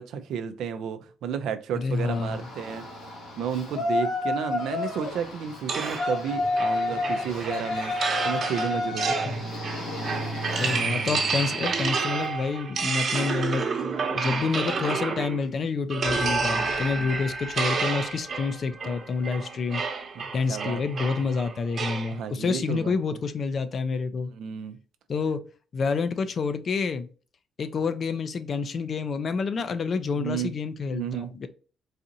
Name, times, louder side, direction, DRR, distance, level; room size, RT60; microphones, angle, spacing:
voice 1, 0.0-2.8 3.4-7.9 8.2-9.1 14.2-14.5 16.8-17.1 20.2-20.3 20.5-20.8 22.1-23.0 24.3-24.8 30.2-30.5 30.9-31.3, right 8 dB, 80° right, 0.5 m, -32 dB
voice 2, 1.7-2.4 9.3-9.4 10.6-13.7 14.1-19.8 20.3-24.3 25.1-25.4 25.7-27.1 27.6-31.5, left 5 dB, 50° left, 0.5 m, -28 dB
Yell, 2.1-12.3, left 2 dB, 85° left, 1.4 m, -31 dB
sound 1, 5.7-15.5 15.9-22.1, right 5 dB, 55° right, 1.0 m, -30 dB
sound 2, 16.0-18.9, equal, 10° right, 0.8 m, -35 dB
4.1 x 2.5 x 2.7 m
cardioid pair, 90°, 0 cm